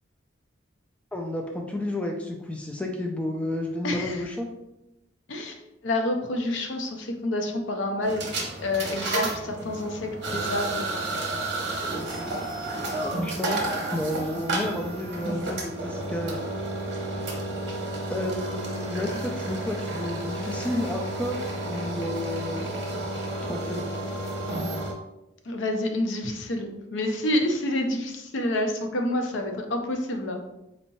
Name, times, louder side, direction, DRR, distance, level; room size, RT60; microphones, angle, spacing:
voice 1, 1.1-4.5 13.0-13.6 13.9-16.4 18.1-21.4 21.6-22.7 23.4-23.9, left 1 dB, 5° left, 1 dB, 0.3 m, -31 dB
voice 2, 3.8-4.2 5.3-8.3 8.6-10.8 25.4-30.4, left 1 dB, 80° left, 4 dB, 0.6 m, -28 dB
sound 1, 8.0-24.9, right 2 dB, 60° right, 0.9 m, -31 dB
4.2 x 2.9 x 2.7 m, 0.90 s
head